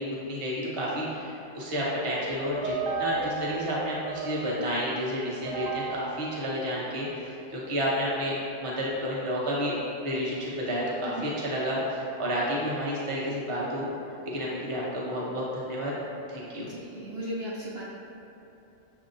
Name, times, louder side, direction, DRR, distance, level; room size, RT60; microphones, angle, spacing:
voice 1, 0.0-2.7 3.0-9.7 10.0-13.9 14.3-15.9 16.3-16.7, equal, 30° right, -6 dB, 0.7 m, -30 dB
sound 1, 2.2-7.5, right 3 dB, 85° right, 1.1 m, -35 dB
voice 2, 16.7-17.8, equal, 65° right, -6 dB, 0.7 m, -36 dB
6.8 x 2.8 x 2.6 m, 2.8 s
omnidirectional pair, 1.3 m